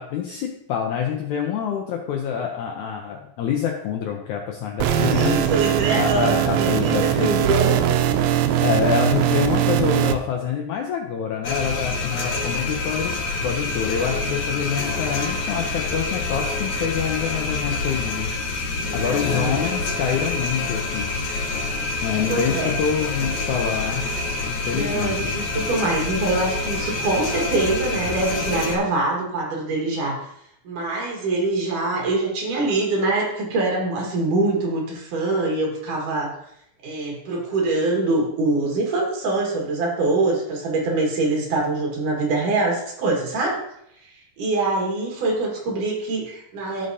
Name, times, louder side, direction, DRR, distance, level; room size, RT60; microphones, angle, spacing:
voice 1, 0.0-5.4 6.0-7.5 8.6-18.3 18.9-21.1 22.0-24.1 24.5-25.3, left 8 dB, 75° left, 1 dB, 1.8 m, -26 dB
sound 1, 4.8-10.2, right 10 dB, 85° right, 2.4 m, -20 dB
voice 2, 5.0-7.8 19.1-19.5 22.3-22.8 24.7-30.3 30.6-36.3 36.8-43.6 44.4-46.9, right 2 dB, 65° right, -1 dB, 3.1 m, -24 dB
sound 2, 11.4-28.8, left 3 dB, 60° left, 2.5 m, -27 dB
15.5 x 5.4 x 2.7 m, 0.76 s
omnidirectional pair, 4.2 m